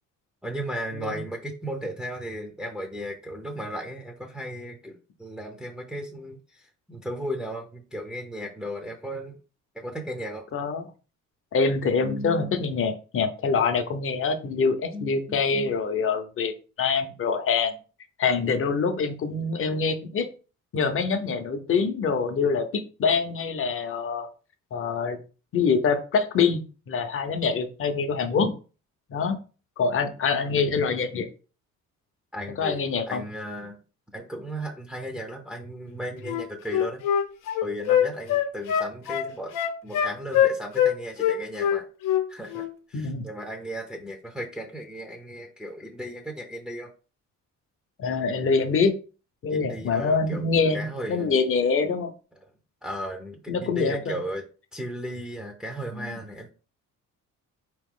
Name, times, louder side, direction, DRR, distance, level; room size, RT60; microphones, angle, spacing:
voice 1, 0.4-9.4 9.7-10.4 12.0-12.6 14.9-15.7 32.3-33.8 34.1-37.0 37.6-39.5 39.8-41.9 42.3-46.9 49.5-50.4 50.7-51.3 52.8-54.5 54.7-56.5, equal, 5° right, 1 dB, 0.5 m, -35 dB
voice 2, 10.5-10.9 11.5-16.5 16.8-17.7 18.2-20.3 20.7-24.3 24.7-25.2 25.5-28.5 29.1-29.4 29.8-31.3 32.6-33.2 42.9-43.3 48.0-48.9 49.4-52.1 53.5-54.2 55.9-56.2, left 5 dB, 40° left, 8 dB, 0.7 m, -25 dB
Wind instrument woodwind instrument, 36.2-40.9 41.2-42.3 42.5-42.7, left 9 dB, 85° left, 0.7 m, -23 dB
4.4 x 3.0 x 3.7 m, 0.36 s
cardioid pair, 130°, 32 cm